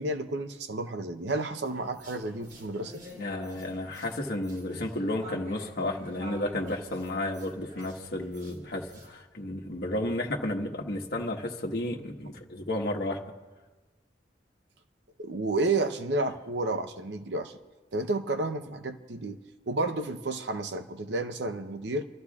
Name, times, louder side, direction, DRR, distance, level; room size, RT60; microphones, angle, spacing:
voice 1, 0.0-3.0 15.2-17.6 17.9-19.4 19.7-22.0, right 2 dB, 80° right, 8 dB, 0.8 m, -31 dB
sound 1, 1.6-9.1, left 1 dB, 50° right, 3.8 m, -47 dB
voice 2, 3.1-13.2, left 1 dB, 60° left, 1 dB, 1.3 m, -32 dB
28.5 x 13.0 x 2.4 m, 1.2 s
head